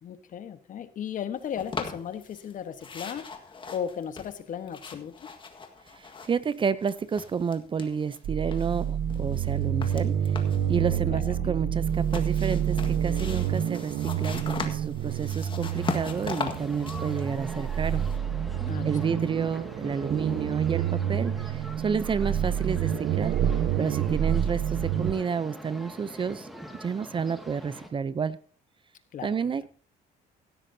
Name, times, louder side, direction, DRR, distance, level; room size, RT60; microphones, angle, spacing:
voice 1, 0.0-5.3 11.1-11.5 18.7-19.2 29.1-29.5, left 8 dB, 50° left, 11 dB, 1.3 m, -36 dB
sound 1, 1.6-2.5 2.8-6.6 6.8-8.2 8.5-10.7 11.9-18.2, left 4 dB, 30° left, 1.7 m, -39 dB
voice 2, 5.9-10.4 10.7-18.0 18.8-26.5 26.8-28.4 29.2-29.7, right 6 dB, 30° right, 16 dB, 0.6 m, -30 dB
sound 2, 8.2-25.1, right 9 dB, 65° right, 1.1 m, -28 dB
sound 3, 15.7-27.9, equal, ahead, 2.0 m, -43 dB
17.0 x 13.0 x 2.8 m, 0.39 s
cardioid pair, 110°, 17 cm